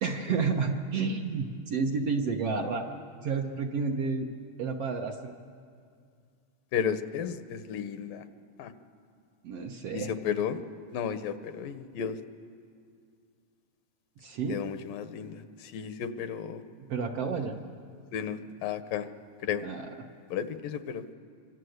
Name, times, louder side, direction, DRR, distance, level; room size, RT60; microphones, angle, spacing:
voice 1, 0.0-2.9 3.2-4.3 4.6-5.3 9.4-10.1 14.2-14.6 16.8-17.6 19.6-20.0, right 5 dB, 60° right, 2 dB, 1.8 m, -30 dB
voice 2, 6.7-8.2 8.6-8.7 9.9-10.6 10.9-12.1 14.5-15.4 15.7-16.6 18.1-19.0 19.4-19.6 20.3-21.0, left 8 dB, 80° left, 10 dB, 2.6 m, -33 dB
26.5 x 24.5 x 8.0 m, 2.2 s
omnidirectional pair, 3.9 m